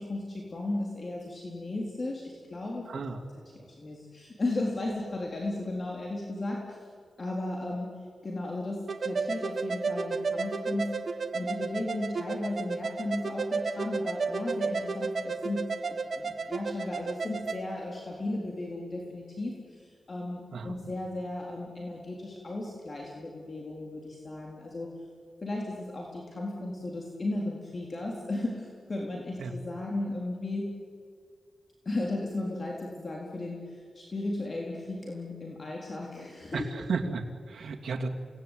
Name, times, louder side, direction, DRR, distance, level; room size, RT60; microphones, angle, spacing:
voice 1, 0.0-3.0 3.5-6.8 7.2-7.9 8.2-10.9 11.3-24.9 25.4-30.7 31.9-36.8, left 2 dB, 40° left, -1 dB, 3.9 m, -35 dB
voice 2, 2.9-3.2 20.5-20.7 29.4-29.5 36.5-38.1, right 4 dB, 75° right, 2 dB, 2.7 m, -33 dB
sound 1, 8.9-17.6, right 4 dB, 55° right, 1.6 m, -32 dB
29.0 x 19.0 x 9.3 m, 2.1 s
wide cardioid pair, 90°, 0 cm